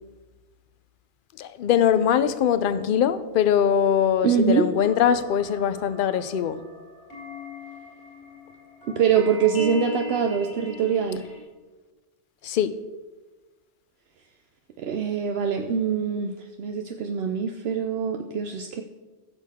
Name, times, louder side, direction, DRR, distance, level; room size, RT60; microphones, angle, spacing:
voice 1, 1.4-6.6 12.4-12.7, left 8 dB, 60° left, 13 dB, 0.7 m, -22 dB
voice 2, 4.2-4.7 8.9-11.2 14.8-18.8, right 7 dB, 70° right, 5 dB, 0.8 m, -24 dB
sound 1, 4.8-11.4, left 1 dB, 85° left, 4.2 m, -39 dB
16.0 x 6.6 x 3.5 m, 1.2 s
omnidirectional pair, 1.1 m